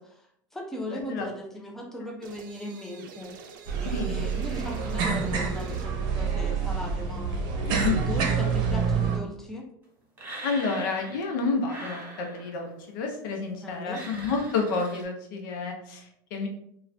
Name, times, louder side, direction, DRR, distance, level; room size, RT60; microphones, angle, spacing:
voice 1, 0.0-3.3 3.8-7.4 8.0-9.7 13.6-14.0, left 1 dB, 5° left, 0 dB, 0.5 m, -38 dB
voice 2, 0.9-1.3 3.8-4.3 7.7-8.0 10.4-16.5, left 4 dB, 80° left, 2 dB, 0.7 m, -30 dB
sound 1, 2.2-6.0, right 5 dB, 85° right, 0.5 m, -47 dB
sound 2, 3.7-9.2, right 5 dB, 50° right, 0.7 m, -27 dB
sound 3, 10.2-11.3 11.6-12.7 13.8-15.0, right 1 dB, 20° right, 1.4 m, -42 dB
2.4 x 2.3 x 3.2 m, 0.72 s
supercardioid pair, 125°, 10 cm